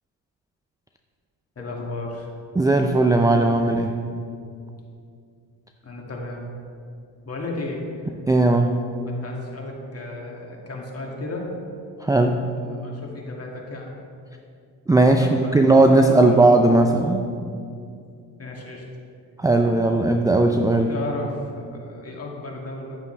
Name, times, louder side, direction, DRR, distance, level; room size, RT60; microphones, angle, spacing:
voice 1, 1.6-2.3 5.8-6.4 7.3-8.0 9.0-11.5 12.7-14.0 15.1-15.7 15.9-16.5 18.4-18.8 20.9-23.0, left 2 dB, 35° left, -1 dB, 2.2 m, -34 dB
voice 2, 2.6-3.9 8.3-8.8 12.0-12.4 14.9-17.3 19.4-20.9, right 2 dB, 10° right, 4 dB, 0.5 m, -17 dB
9.9 x 9.0 x 3.3 m, 2.4 s
supercardioid pair, 65°, 43 cm